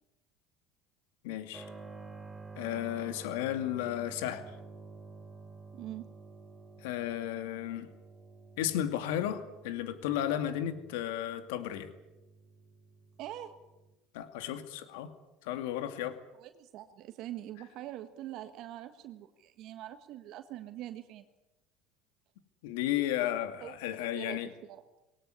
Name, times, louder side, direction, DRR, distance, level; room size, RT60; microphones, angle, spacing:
voice 1, 1.2-1.7 2.6-4.5 6.8-7.9 8.6-11.9 14.1-15.1 15.4-16.2 22.6-24.5, left 11 dB, 80° left, 9 dB, 2.4 m, -34 dB
Keyboard (musical), 1.5-13.9, right 4 dB, 10° right, 4.0 m, -51 dB
voice 2, 5.7-6.1 13.2-13.6 16.4-21.2 23.6-23.8 24.1-24.8, right 13 dB, 60° right, 8 dB, 1.5 m, -44 dB
20.5 x 18.5 x 9.7 m, 1.0 s
hypercardioid pair, 85°, 0 cm